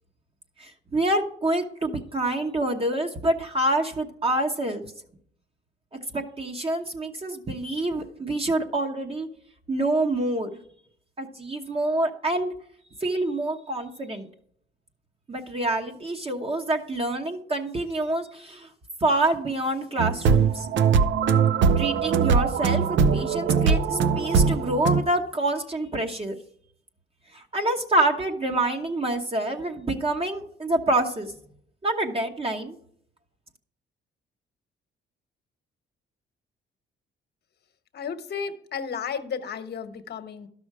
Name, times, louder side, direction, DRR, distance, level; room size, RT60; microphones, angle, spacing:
voice 1, 0.6-4.8 6.1-9.3 9.7-10.5 11.2-12.5 13.0-14.3 15.3-18.7 19.0-20.7 21.8-26.4 27.3-31.3 31.8-32.8, right 2 dB, 30° right, 3 dB, 1.1 m, -27 dB
sound 1, 20.0-25.0, right 6 dB, 70° right, 0.6 m, -21 dB
voice 2, 37.9-40.5, left 6 dB, 55° left, 9 dB, 1.1 m, -33 dB
12.0 x 6.2 x 4.8 m, 0.64 s
cardioid pair, 90°, 20 cm